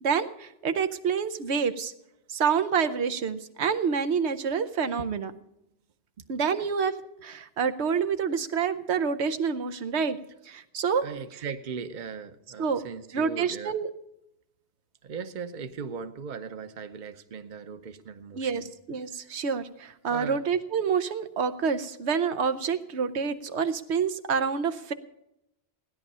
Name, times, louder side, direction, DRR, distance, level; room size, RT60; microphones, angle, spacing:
voice 1, 0.0-1.9 2.3-5.3 6.3-6.9 7.2-10.2 10.4-11.0 12.6-12.8 13.1-13.9 18.3-24.9, right 6 dB, 90° right, 10 dB, 1.1 m, -27 dB
voice 2, 11.0-13.8 15.0-18.7 19.2-19.4 20.1-20.4, right 5 dB, 50° right, 10 dB, 0.9 m, -38 dB
16.0 x 10.0 x 5.5 m, 0.85 s
omnidirectional pair, 1.1 m